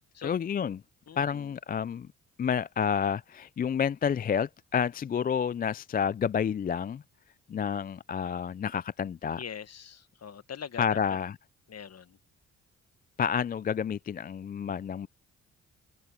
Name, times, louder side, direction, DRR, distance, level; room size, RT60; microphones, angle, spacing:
voice 1, 0.2-0.8 1.2-2.1 2.4-7.0 7.5-9.4 10.8-11.3 13.2-15.1, left 7 dB, 30° left, 0.4 m, -29 dB
voice 2, 1.1-1.5 9.4-11.0 11.7-12.2, left 8 dB, 55° left, 1.5 m, -42 dB
open air
supercardioid pair, 55°, 31 cm